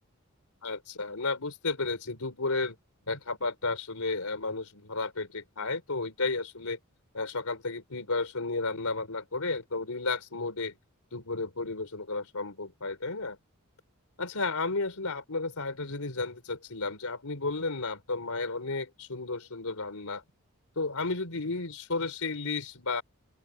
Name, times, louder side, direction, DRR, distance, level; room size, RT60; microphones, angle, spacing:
voice 1, 0.6-2.8 3.1-6.8 7.1-10.7 11.1-13.4 14.2-20.2 20.8-23.0, left 3 dB, 80° left, 3.7 m, -33 dB
open air
head